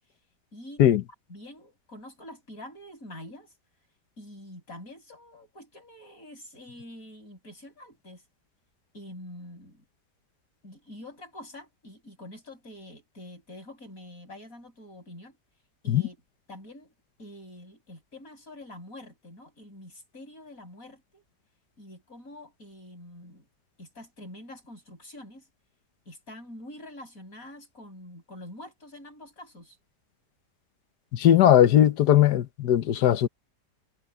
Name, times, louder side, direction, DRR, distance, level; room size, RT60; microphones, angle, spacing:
voice 1, 0.5-0.8 1.3-3.5 4.2-8.2 8.9-9.8 10.6-15.4 15.8-16.2 16.5-16.9 17.2-21.2 21.8-23.5 23.8-25.5 26.1-29.8, left 1 dB, 55° left, 8.6 m, -46 dB
voice 2, 31.1-33.3, left 11 dB, 85° left, 1.5 m, -19 dB
omnidirectional pair, 1.7 m